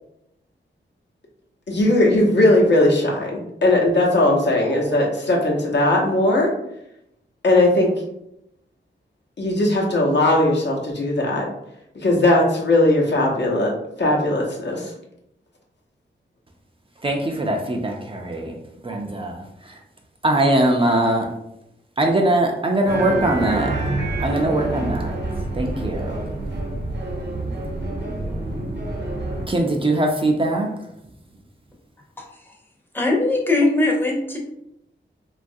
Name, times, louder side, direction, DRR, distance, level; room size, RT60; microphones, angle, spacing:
voice 1, 1.7-6.5 7.4-7.9 9.4-11.5 11.9-13.7 14.0-14.9, left 1 dB, 65° left, -2 dB, 0.8 m, -18 dB
voice 2, 17.0-18.6 18.8-19.8 20.2-21.3 22.0-23.7 24.2-25.1 25.5-26.3 29.5-30.7, right 1 dB, 30° right, 1 dB, 0.4 m, -21 dB
sound 1, 22.9-29.5, right 2 dB, 65° right, 0.7 m, -27 dB
voice 3, 32.2-32.5 32.9-34.4, left 2 dB, 10° left, -1 dB, 0.6 m, -21 dB
3.0 x 2.3 x 2.6 m, 0.82 s
wide cardioid pair, 100°, 19 cm